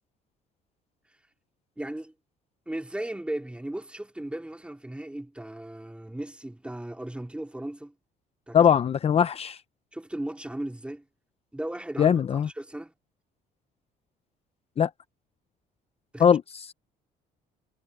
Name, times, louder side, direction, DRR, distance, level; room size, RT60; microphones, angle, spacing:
voice 1, 1.8-2.1 2.7-7.9 8.5-8.6 9.9-11.0 11.5-12.9 16.1-16.3, right 1 dB, 5° right, 3.8 m, -36 dB
voice 2, 8.5-9.6 12.0-12.5 14.8-14.9 16.2-16.7, left 8 dB, 35° left, 0.7 m, -21 dB
cardioid pair, 110°, 17 cm